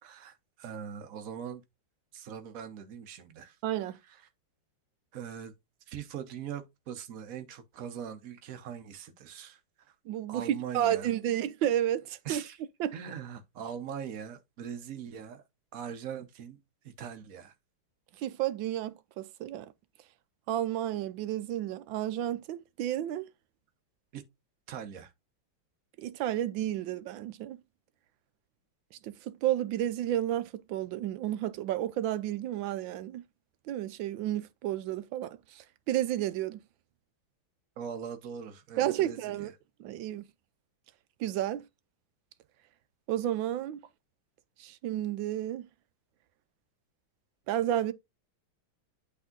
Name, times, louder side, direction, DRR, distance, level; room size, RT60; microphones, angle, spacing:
voice 1, 0.0-1.6 2.1-4.2 5.1-5.5 5.9-9.9 10.3-11.1 12.2-12.6 12.9-15.4 15.7-16.6 16.8-17.5 24.1-24.2 24.7-25.1 37.8-39.5, right 8 dB, 50° right, 1.2 m, -41 dB
voice 2, 3.6-4.0 10.1-12.4 12.8-12.9 18.2-19.7 20.5-23.3 26.0-27.6 29.0-29.1 29.4-33.2 33.7-36.6 38.8-39.5 39.8-40.2 41.2-41.6 43.1-43.8 44.6-45.7 47.5-47.9, right 12 dB, 75° right, 1.3 m, -31 dB
8.4 x 3.6 x 3.8 m
omnidirectional pair, 2.2 m